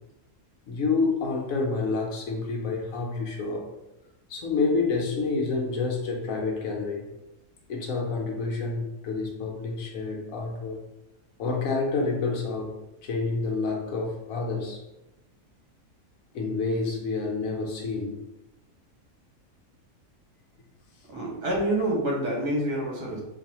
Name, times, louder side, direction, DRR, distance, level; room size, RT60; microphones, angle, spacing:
voice 1, 0.7-3.6 4.3-7.0 7.7-10.8 11.4-12.7 13.0-14.8 16.3-18.2, left 4 dB, 65° left, 0 dB, 1.0 m, -28 dB
voice 2, 21.0-23.2, right 1 dB, 80° right, -4 dB, 1.8 m, -27 dB
4.0 x 2.7 x 2.8 m, 0.94 s
omnidirectional pair, 1.7 m